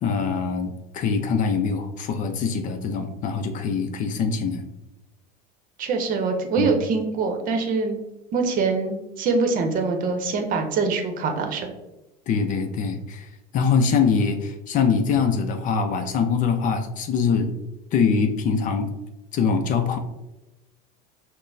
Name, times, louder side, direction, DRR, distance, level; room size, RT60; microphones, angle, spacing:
voice 1, 0.0-4.6 6.6-6.8 12.3-17.5 17.9-18.9 19.3-20.0, left 5 dB, 40° left, 6 dB, 0.5 m, -23 dB
voice 2, 5.8-8.0 8.3-11.7, right 4 dB, 45° right, 5 dB, 0.7 m, -24 dB
5.9 x 2.1 x 2.6 m, 0.98 s
supercardioid pair, 110°, 20 cm